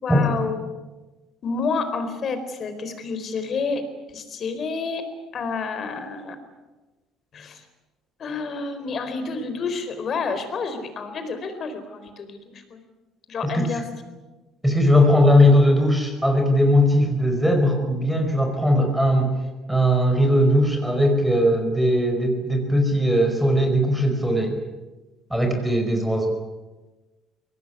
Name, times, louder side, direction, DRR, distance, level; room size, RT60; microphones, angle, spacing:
voice 1, 0.0-0.6 1.4-5.0 5.3-6.4 7.3-7.7 8.2-12.8 13.3-13.8, left 4 dB, 45° left, 9 dB, 4.3 m, -29 dB
voice 2, 14.6-19.4 19.7-24.6 25.3-26.3, equal, 5° right, 4 dB, 4.9 m, -19 dB
23.0 x 18.5 x 9.8 m, 1.2 s
cardioid pair, 115°, 0 cm